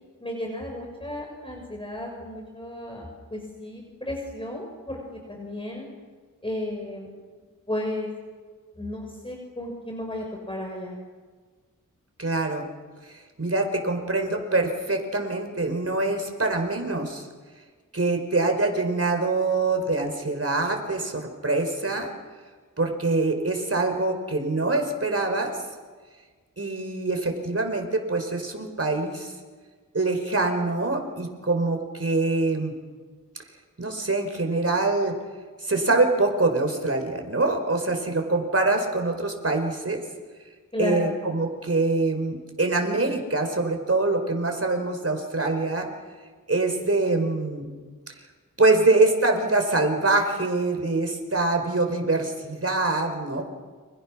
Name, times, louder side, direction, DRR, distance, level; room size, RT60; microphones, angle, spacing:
voice 1, 0.2-3.1 3.3-5.9 6.4-7.1 7.7-8.1 8.8-11.0 40.7-41.1, left 1 dB, 15° left, 1 dB, 5.8 m, -33 dB
voice 2, 12.2-12.7 13.4-17.2 17.9-22.1 22.8-25.6 26.6-29.3 29.9-32.7 33.8-35.1 35.6-40.0 40.8-45.9 46.5-47.7 48.6-53.5, right 2 dB, 45° right, 4 dB, 4.8 m, -24 dB
30.0 x 27.0 x 6.2 m, 1.5 s
wide cardioid pair, 60°, 34 cm